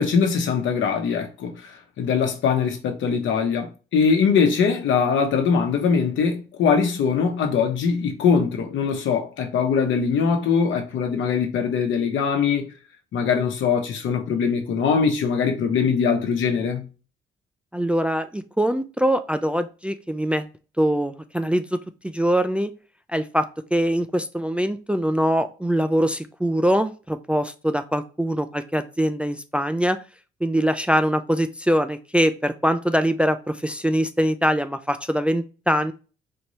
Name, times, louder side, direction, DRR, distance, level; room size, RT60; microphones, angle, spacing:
voice 1, 0.0-12.7 13.1-16.9, left 6 dB, 75° left, 1.0 m, -22 dB
voice 2, 17.7-20.5 20.8-22.7 23.1-23.4 23.7-30.0 30.4-35.9, equal, 5° right, 0.3 m, -23 dB
4.4 x 2.7 x 3.1 m
cardioid pair, 90°, 20 cm